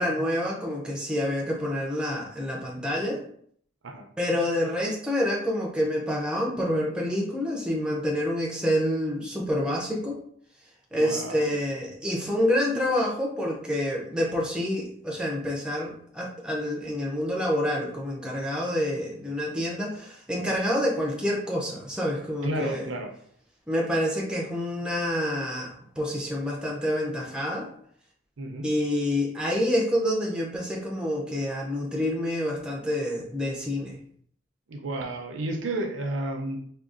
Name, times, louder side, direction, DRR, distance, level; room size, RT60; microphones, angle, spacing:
voice 1, 0.0-3.2 4.2-10.2 10.9-22.9 23.7-27.7 28.6-34.0, left 1 dB, 5° right, -2 dB, 0.4 m, -27 dB
voice 2, 10.9-11.5 22.4-23.1 28.4-28.7 34.7-36.6, right 1 dB, 75° right, 2 dB, 0.5 m, -32 dB
3.6 x 2.3 x 2.5 m, 0.62 s
head